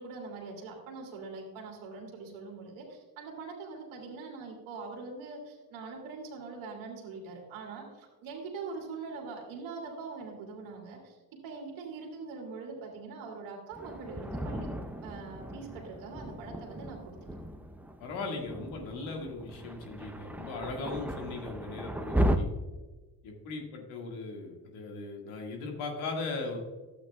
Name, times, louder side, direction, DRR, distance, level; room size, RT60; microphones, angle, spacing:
voice 1, 0.0-11.2 11.4-14.7 15.0-17.2, right 4 dB, 75° right, 0 dB, 2.2 m, -43 dB
Thunder, 13.7-22.4, equal, 5° right, 0.8 m, -35 dB
voice 2, 18.0-22.5 23.2-26.6, left 3 dB, 80° left, 1 dB, 2.0 m, -38 dB
12.0 x 8.2 x 2.3 m, 1.2 s
hypercardioid pair, 55°, 48 cm